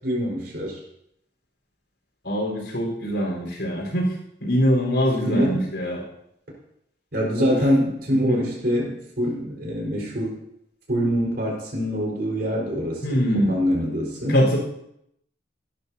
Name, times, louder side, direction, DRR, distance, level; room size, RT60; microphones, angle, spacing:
voice 1, 0.0-0.8 5.3-5.7 7.1-10.3 10.9-14.4, equal, 60° right, -3 dB, 4.7 m, -24 dB
voice 2, 2.2-6.0 7.4-7.6 8.1-8.4 13.0-13.6 14.3-14.6, equal, 80° left, -1 dB, 4.4 m, -23 dB
18.0 x 11.5 x 2.8 m, 0.76 s
head